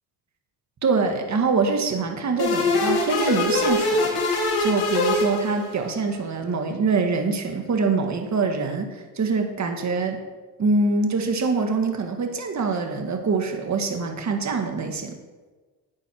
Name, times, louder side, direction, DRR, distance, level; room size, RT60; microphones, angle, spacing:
voice 1, 0.8-4.2 4.6-10.2 10.6-15.1, right 4 dB, 45° right, 4 dB, 1.7 m, -24 dB
sound 1, 2.4-6.0, left 2 dB, 70° left, 2.8 m, -23 dB
10.0 x 9.3 x 4.5 m, 1.3 s
cardioid pair, 85°, 40 cm